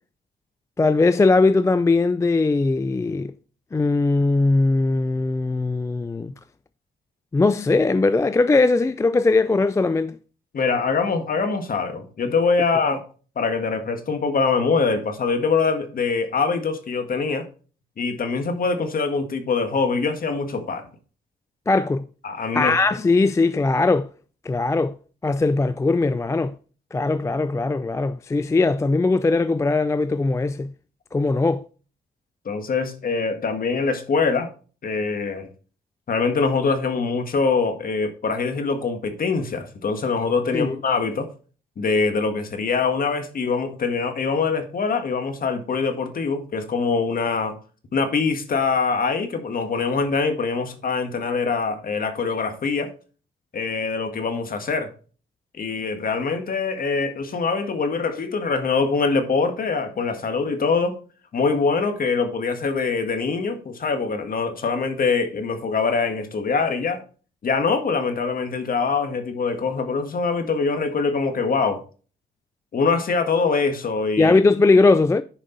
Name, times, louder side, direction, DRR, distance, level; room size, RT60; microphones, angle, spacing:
voice 1, 0.8-3.3 3.7-6.3 7.3-10.2 21.7-22.0 22.5-24.1 24.4-25.0 25.2-26.6 26.9-30.7 31.1-31.6 40.5-40.8 74.2-75.2, left 3 dB, 15° left, 0.3 m, -20 dB
voice 2, 10.5-13.0 13.3-17.4 18.0-20.9 22.2-22.7 32.4-34.5 34.8-35.5 36.1-41.3 41.8-47.5 47.9-52.9 53.5-54.9 55.6-61.0 61.3-67.0 67.4-71.8 72.7-74.3, left 4 dB, 45° left, 1.8 m, -23 dB
10.5 x 5.1 x 3.9 m
cardioid pair, 90°, 20 cm